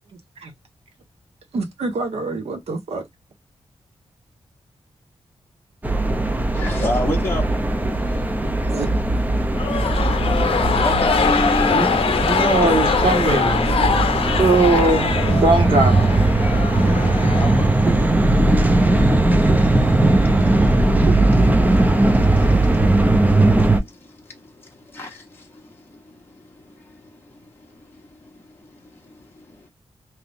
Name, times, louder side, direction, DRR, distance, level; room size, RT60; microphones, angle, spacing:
voice 1, 1.5-3.1 8.7-8.9, right 3 dB, 75° right, 1.2 m, -27 dB
sound 1, 5.8-23.8, right 2 dB, 15° right, 0.6 m, -18 dB
voice 2, 6.5-7.6 8.6-8.7 10.7-11.9 12.2-12.7 14.2-14.3 14.6-14.9 16.7-29.7, left 1 dB, 20° left, 1.2 m, -33 dB
sound 2, 9.5-18.0, left 6 dB, 60° left, 0.7 m, -22 dB
voice 3, 12.2-16.0, right 3 dB, 50° right, 1.6 m, -20 dB
3.5 x 2.9 x 2.6 m
wide cardioid pair, 165°, 11 cm